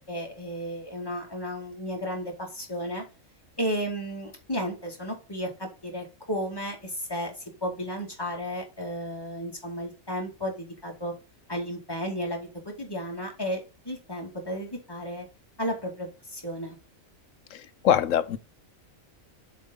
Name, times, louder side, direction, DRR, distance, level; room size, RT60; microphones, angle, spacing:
voice 1, 0.1-3.0 3.6-7.3 7.6-11.1 11.5-15.3 15.6-16.8, equal, 15° left, 2.3 m, -33 dB
voice 2, 17.5-18.4, left 10 dB, 70° left, 1.0 m, -24 dB
7.3 x 4.4 x 5.3 m
omnidirectional pair, 1.4 m